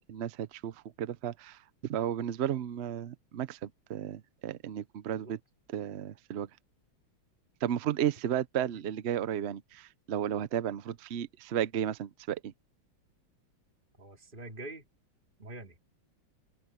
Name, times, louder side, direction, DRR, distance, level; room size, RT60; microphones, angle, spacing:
voice 1, 0.1-5.4 5.7-6.5 7.6-12.5, right 10 dB, 80° right, 0.5 m, -33 dB
voice 2, 14.0-14.9 15.4-15.8, right 2 dB, 25° right, 2.9 m, -44 dB
open air
omnidirectional pair, 2.2 m